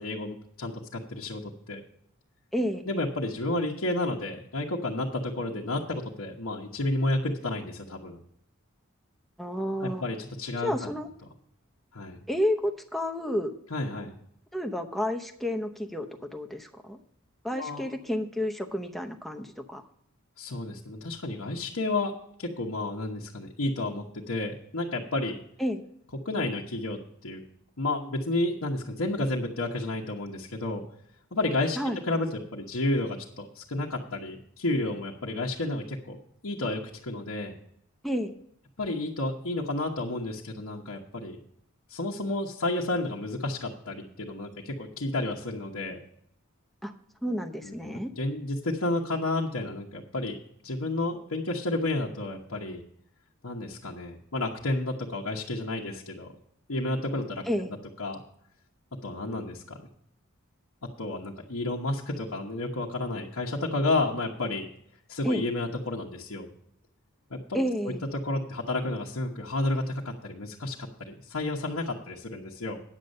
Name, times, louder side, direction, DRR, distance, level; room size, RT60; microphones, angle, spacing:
voice 1, 0.0-1.8 2.9-8.2 9.8-10.9 11.9-12.2 13.7-14.1 17.5-17.9 20.4-22.1 22.4-25.4 26.2-27.4 27.8-30.8 31.3-31.8 32.1-36.2 36.4-37.5 38.8-41.4 41.9-46.0 47.6-50.4 50.6-52.8 53.4-56.3 56.7-57.4 58.0-58.2 59.0-59.9 60.8-64.7 65.1-66.5 67.3-67.9 68.2-72.8, left 2 dB, 75° left, -3 dB, 1.2 m, -31 dB
voice 2, 2.5-2.8 9.4-10.0 10.6-11.1 12.3-13.5 14.5-17.0 17.4-19.8 25.6-25.8 31.8-32.0 38.0-38.3 46.8-46.9 47.2-48.1 57.5-57.7 65.2-65.4 67.5-68.0, equal, ahead, 4 dB, 0.8 m, -30 dB
9.6 x 8.1 x 5.4 m, 0.70 s
head